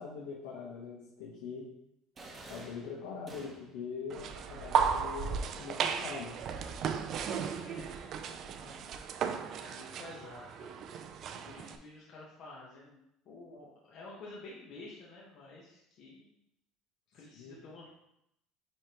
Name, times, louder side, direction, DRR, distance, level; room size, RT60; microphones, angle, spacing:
voice 1, 0.0-1.7 2.5-6.3 17.3-17.8, left 5 dB, 85° left, -5 dB, 1.4 m, -43 dB
Musket shots, 2.2-3.9, right 2 dB, 20° right, 0.9 m, -50 dB
sound 1, 4.1-11.8, right 6 dB, 40° right, 0.4 m, -35 dB
voice 2, 7.3-8.8 9.6-13.0 13.2-16.3 17.1-17.9, left 2 dB, 50° left, -5 dB, 1.2 m, -51 dB
10.0 x 3.4 x 3.0 m, 0.81 s
cardioid pair, 150°, 0 cm